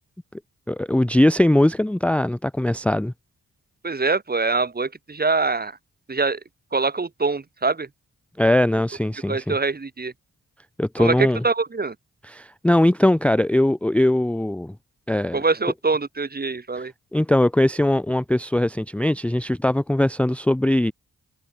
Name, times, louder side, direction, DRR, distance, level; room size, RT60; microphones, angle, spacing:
voice 1, 0.7-3.1 8.4-9.6 10.8-11.4 12.2-14.7 15.1-15.4 16.8-20.9, left 1 dB, 5° left, 0.6 m, -20 dB
voice 2, 3.8-5.7 6.1-6.4 6.7-7.9 9.3-10.1 11.0-11.9 15.3-16.9, right 4 dB, 30° right, 1.5 m, -24 dB
cardioid pair, 60°, 34 cm